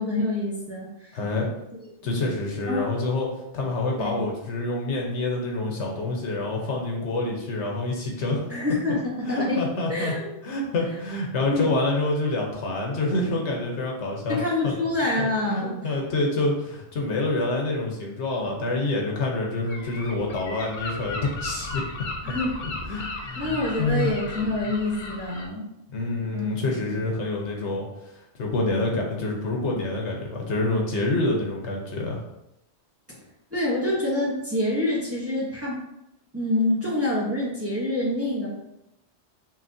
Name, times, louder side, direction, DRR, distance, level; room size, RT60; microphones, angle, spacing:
voice 1, 0.0-1.1 2.0-2.2 2.7-2.9 4.0-4.3 8.5-10.3 11.5-11.7 14.3-15.8 22.2-22.6 23.4-25.7 26.3-27.0 33.5-35.8 36.3-38.5, left 2 dB, 15° right, -5 dB, 0.9 m, -26 dB
voice 2, 1.1-1.5 2.0-3.3 3.5-8.4 9.2-10.1 10.4-14.7 15.2-21.8 22.8-24.2 25.9-27.9 28.4-32.2, left 2 dB, 80° left, -1 dB, 1.2 m, -27 dB
Gull seagull, 19.7-25.5, left 2 dB, 55° left, 0.7 m, -35 dB
5.7 x 2.8 x 2.7 m, 0.86 s
omnidirectional pair, 1.2 m